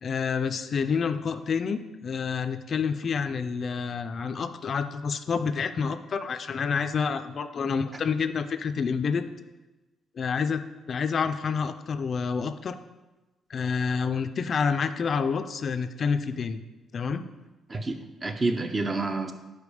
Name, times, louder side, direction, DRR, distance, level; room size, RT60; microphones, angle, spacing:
voice 1, 0.0-9.3 10.2-12.8 13.5-16.6 16.9-17.2, left 5 dB, 50° left, 10 dB, 0.3 m, -28 dB
voice 2, 17.7-19.3, right 3 dB, 30° right, 7 dB, 0.6 m, -29 dB
5.0 x 4.5 x 4.9 m, 1.1 s
cardioid pair, 90°, 0 cm